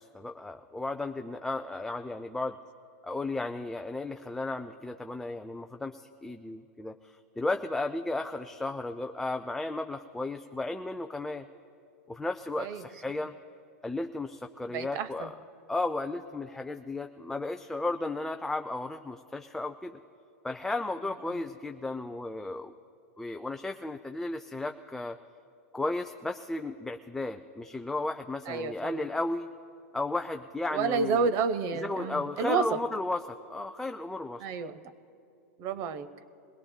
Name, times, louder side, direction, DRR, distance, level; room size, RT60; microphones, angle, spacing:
voice 1, 0.0-2.6 3.0-11.5 12.1-13.3 13.8-15.4 15.7-20.0 20.4-22.7 23.2-25.2 25.7-29.5 29.9-31.3 31.7-34.4, left 2 dB, 5° left, 6 dB, 0.3 m, -34 dB
voice 2, 14.7-15.3 28.5-29.0 30.7-32.8 34.4-34.8 35.6-36.1, right 5 dB, 45° right, 13 dB, 0.7 m, -30 dB
22.0 x 17.5 x 2.2 m, 2.6 s
hypercardioid pair, 125°, 8 cm